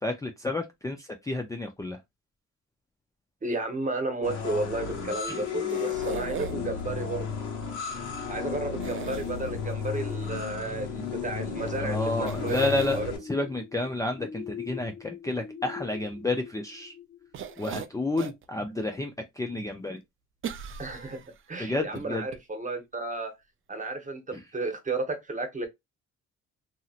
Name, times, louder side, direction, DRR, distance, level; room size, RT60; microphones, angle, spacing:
voice 1, 0.0-2.0 5.3-5.4 11.8-13.0 13.3-16.9 17.6-19.1 19.4-20.0 21.6-22.2 24.3-24.4, left 2 dB, 10° left, 0.5 m, -30 dB
voice 2, 3.4-7.3 8.3-12.7 12.9-13.1 20.8-23.4 23.7-25.7, right 2 dB, 25° right, 1.0 m, -33 dB
sound 1, 4.2-13.2, left 6 dB, 75° left, 1.4 m, -33 dB
sound 2, 5.7-6.8 8.8-9.7 11.7-11.8 12.3-13.0 17.3-18.5 18.9-19.0 20.4-21.4 22.0-22.1 22.3-22.4, right 8 dB, 45° right, 0.5 m, -38 dB
sound 3, 10.3-17.7 18.2-18.3, left 7 dB, 45° left, 1.0 m, -43 dB
2.9 x 2.7 x 2.4 m
cardioid pair, 90°, 30 cm